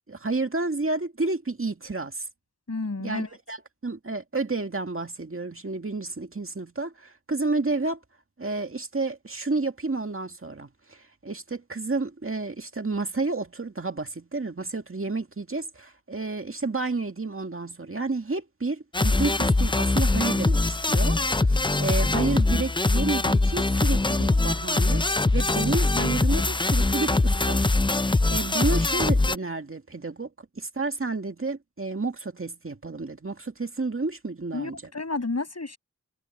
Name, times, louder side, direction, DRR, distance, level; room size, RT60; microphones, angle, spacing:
voice 1, 0.1-2.3 3.0-8.0 8.4-25.0 25.3-30.3 30.6-34.8, right 3 dB, 45° right, 2.1 m, -30 dB
voice 2, 2.7-3.3 34.5-35.8, left 3 dB, 55° left, 6.6 m, -31 dB
sound 1, 18.9-29.4, left 2 dB, 15° left, 0.5 m, -22 dB
wide cardioid pair, 55°, 30 cm